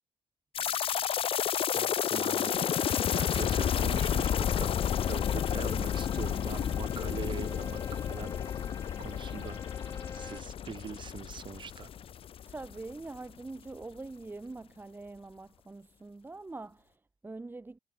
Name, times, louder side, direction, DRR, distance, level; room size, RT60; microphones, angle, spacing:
sound 1, 0.5-12.9 13.1-13.2 13.8-13.9, left 9 dB, 50° left, 0.9 m, -31 dB
voice 1, 1.7-2.9 3.1-8.4 9.0-11.9, right 7 dB, 40° right, 5.0 m, -43 dB
sound 2, 2.4-10.4, left 4 dB, 25° left, 5.4 m, -46 dB
voice 2, 12.5-17.8, right 3 dB, 15° right, 4.2 m, -44 dB
cardioid pair, 110°, 12 cm